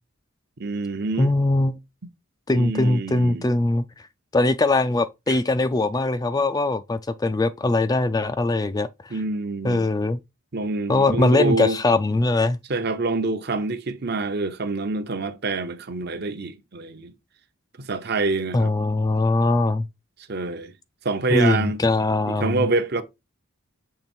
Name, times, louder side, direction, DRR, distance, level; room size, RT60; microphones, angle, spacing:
voice 1, 0.6-1.3 2.5-3.6 5.3-5.4 9.1-9.8 10.5-11.8 12.7-17.1 17.8-18.7 20.3-20.7 21.0-21.8 22.3-23.0, right 3 dB, 50° right, 0.8 m, -26 dB
voice 2, 1.2-1.7 2.5-3.8 4.3-8.9 9.6-10.2 10.9-12.6 18.5-19.9 21.3-22.6, left 2 dB, 20° left, 0.3 m, -21 dB
6.8 x 3.3 x 4.4 m
head